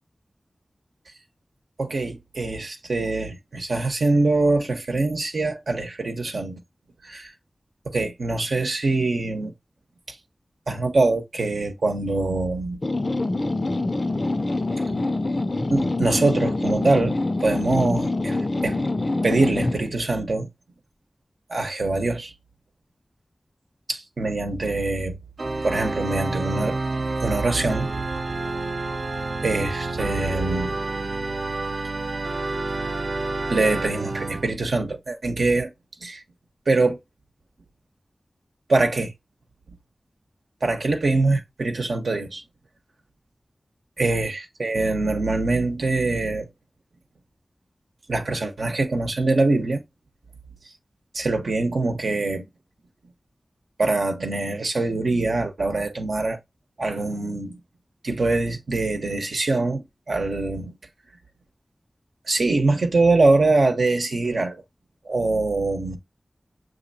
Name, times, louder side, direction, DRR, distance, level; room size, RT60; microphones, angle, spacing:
voice 1, 1.8-6.6 7.0-7.3 7.8-9.5 10.1-10.2 10.7-12.8 15.7-17.1 17.4-18.4 18.6-18.8 19.2-20.5 21.5-22.3 23.9-25.1 25.6-26.8 27.2-27.9 29.4-30.8 33.5-35.7 36.0-36.2 36.7-37.0 38.7-39.1 40.6-42.4 44.0-46.5 48.1-49.8 51.1-52.5 53.8-56.4 56.8-57.6 58.0-60.8 62.3-64.6 65.0-66.0, right 2 dB, 90° right, 1.0 m, -23 dB
sound 1, 12.8-19.9, left 2 dB, 45° left, 0.3 m, -25 dB
Organ, 25.4-34.5, right 3 dB, 70° right, 0.6 m, -29 dB
6.4 x 2.8 x 2.7 m
wide cardioid pair, 55°, 0 cm